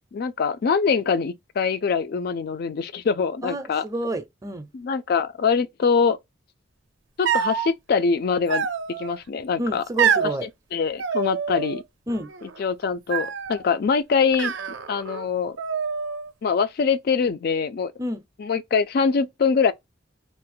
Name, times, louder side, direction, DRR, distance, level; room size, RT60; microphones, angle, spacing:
voice 1, 0.1-3.8 4.7-6.2 7.2-8.7 9.0-9.8 10.7-11.8 12.6-14.5 14.9-15.6 16.4-17.9 18.4-19.7, left 5 dB, 55° left, 0.4 m, -23 dB
voice 2, 3.4-4.7 9.6-10.5 12.1-12.3 18.0-18.2, right 1 dB, 20° right, 0.5 m, -29 dB
sound 1, 7.2-7.7 8.5-9.2 10.0-10.4 11.0-11.8 12.1-12.6 13.1-13.6 14.3-15.2 15.6-16.3, right 7 dB, 75° right, 0.4 m, -26 dB
2.5 x 2.1 x 3.7 m
head